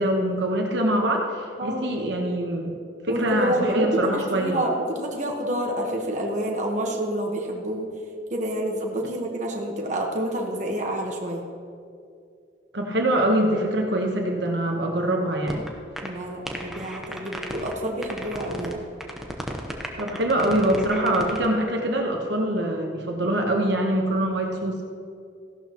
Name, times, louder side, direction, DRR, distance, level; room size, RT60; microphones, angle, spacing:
voice 1, 0.0-2.7 3.1-4.6 12.7-15.6 20.0-24.8, right 1 dB, 70° right, 1 dB, 1.2 m, -24 dB
voice 2, 3.1-7.9 8.3-11.4 16.0-18.8, right 1 dB, 40° right, 0 dB, 1.3 m, -28 dB
sound 1, 15.5-15.7 16.0-16.1 16.5-17.7 18.0-18.7 19.0-21.5, equal, ahead, 0.8 m, -34 dB
15.0 x 12.0 x 3.0 m, 2.4 s
head